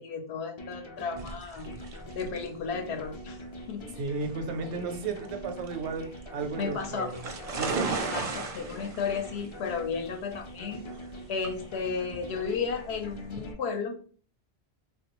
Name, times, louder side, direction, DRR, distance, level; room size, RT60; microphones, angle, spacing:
voice 1, 0.0-1.7 2.1-3.4 3.7-3.9 6.6-7.1 7.8-10.9 11.3-14.0, left 5 dB, 80° left, 5 dB, 0.8 m, -33 dB
sound 1, 0.6-13.6, equal, 40° left, 0.4 m, -44 dB
sound 2, 1.2-13.5, right 4 dB, 50° right, 0.5 m, -38 dB
voice 2, 4.0-7.2 7.6-7.9, right 4 dB, 85° right, 6 dB, 0.9 m, -34 dB
3.4 x 2.3 x 2.9 m, 0.42 s
omnidirectional pair, 1.1 m